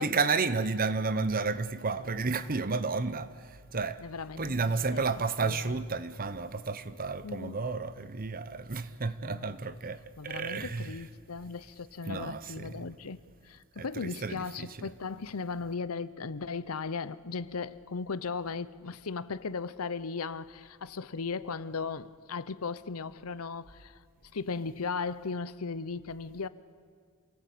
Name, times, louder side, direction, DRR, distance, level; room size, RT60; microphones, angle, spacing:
voice 1, 0.0-4.0 4.4-11.0 12.1-12.9 13.8-14.9, right 4 dB, 40° right, 0.9 m, -32 dB
voice 2, 4.0-4.6 4.9-5.0 5.4-5.8 7.2-7.6 9.2-9.6 10.2-24.0 24.3-26.5, left 4 dB, 80° left, 0.8 m, -37 dB
27.0 x 18.5 x 8.5 m
head